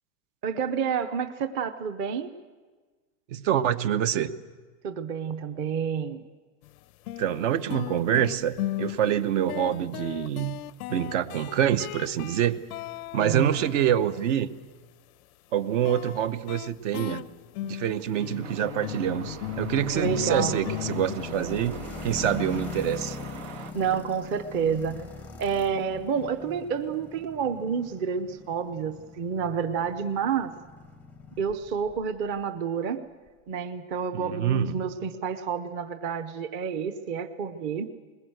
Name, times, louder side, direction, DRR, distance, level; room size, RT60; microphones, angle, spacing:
voice 1, 0.4-2.3 4.8-6.2 13.2-13.4 19.9-20.6 23.7-25.0 25.4-30.5 31.4-33.0 33.5-37.9, right 6 dB, 25° right, 9 dB, 0.7 m, -29 dB
voice 2, 3.3-4.3 7.2-10.6 10.9-12.6 13.1-14.5 15.5-17.2 17.6-23.2 34.1-34.8, right 10 dB, 60° right, 12 dB, 1.0 m, -26 dB
sound 1, 6.6-6.7 7.1-14.3 15.8-21.7, left 16 dB, 80° left, 0.6 m, -36 dB
Truck, 18.4-23.7, right 7 dB, 80° right, 2.6 m, -43 dB
sound 2, 18.9-32.0, left 4 dB, 5° left, 0.6 m, -42 dB
20.5 x 20.5 x 7.9 m, 1.4 s
supercardioid pair, 160°, 42 cm